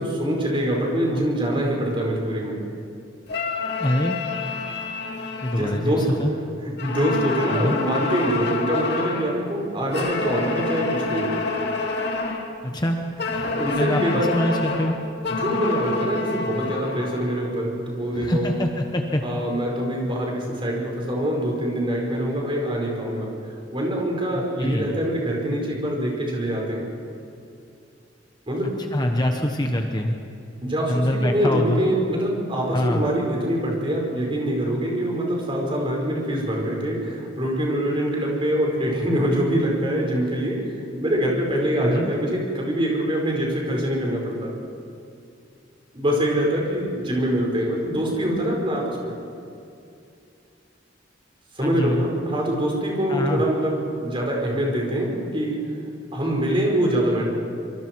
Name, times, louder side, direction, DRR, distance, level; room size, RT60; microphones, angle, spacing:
voice 1, 0.1-2.6 5.5-6.0 6.8-11.3 13.4-14.3 15.3-18.5 19.2-23.3 23.7-26.9 28.5-28.7 30.6-40.6 41.0-44.5 45.9-49.2 51.6-55.6 56.1-57.2, equal, 25° right, -2 dB, 5.2 m, -24 dB
sound 1, 3.3-6.4 6.8-9.4 9.9-12.5 13.2-17.4, left 3 dB, 60° left, 2.4 m, -28 dB
voice 2, 3.8-4.2 5.4-6.3 7.5-7.8 12.6-13.0 13.3-15.0 18.1-19.2 24.6-24.9 28.9-30.2 30.9-31.8 32.7-33.0 41.8-42.1 51.6-52.1 53.1-53.4, left 1 dB, 20° left, 3 dB, 1.1 m, -24 dB
25.5 x 24.0 x 4.7 m, 2.5 s
head